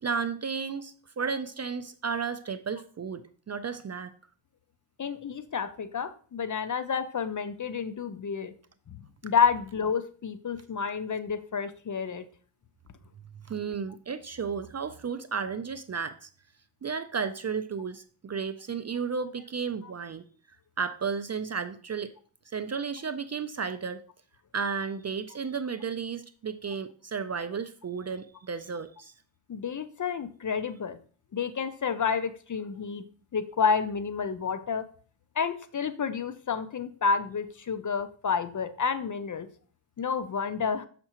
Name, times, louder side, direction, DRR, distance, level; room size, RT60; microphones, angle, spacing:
voice 1, 0.0-4.1 13.5-16.3 16.8-20.2 20.8-22.1 22.5-24.0 24.5-29.1, right 6 dB, 35° right, 11 dB, 0.4 m, -33 dB
voice 2, 5.0-8.5 8.9-9.0 9.2-12.3 29.5-31.0 31.3-33.0 33.3-34.9 35.4-39.5 40.0-40.9, left 6 dB, 40° left, 12 dB, 0.5 m, -30 dB
6.5 x 5.8 x 2.9 m, 0.42 s
wide cardioid pair, 95°, 48 cm